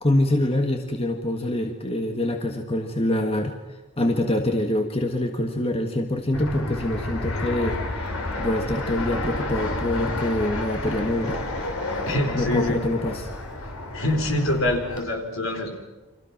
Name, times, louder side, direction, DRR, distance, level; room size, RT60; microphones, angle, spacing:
voice 1, 0.0-3.5 4.0-11.4 12.3-13.3, left 1 dB, 25° left, 4 dB, 1.7 m, -25 dB
Fixed-wing aircraft airplane, 6.3-15.0, left 2 dB, 90° left, 3.9 m, -30 dB
voice 2, 12.1-12.7 13.9-15.7, left 1 dB, 70° left, 4 dB, 4.3 m, -25 dB
30.0 x 25.5 x 6.0 m, 1.1 s
head